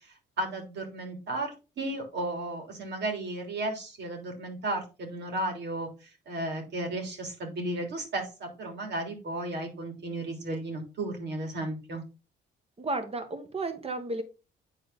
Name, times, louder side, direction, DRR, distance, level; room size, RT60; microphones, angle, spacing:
voice 1, 0.0-12.0, right 1 dB, 60° right, 2 dB, 3.2 m, -34 dB
voice 2, 12.8-14.2, right 2 dB, 30° right, 7 dB, 1.7 m, -33 dB
9.1 x 4.3 x 3.8 m, 0.30 s
cardioid pair, 90°, 20 cm